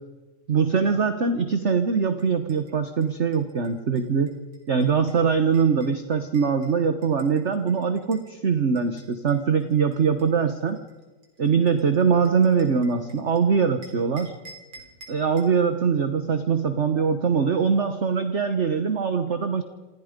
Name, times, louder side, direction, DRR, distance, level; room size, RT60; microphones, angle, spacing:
voice 1, 0.5-4.3 4.7-10.8 11.4-14.3 15.1-19.6, right 6 dB, 40° right, 8 dB, 1.3 m, -22 dB
sound 1, 2.2-8.3 8.8-13.4 13.8-15.6, right 3 dB, 85° right, 4.7 m, -51 dB
28.5 x 27.0 x 5.3 m, 1.2 s
omnidirectional pair, 2.3 m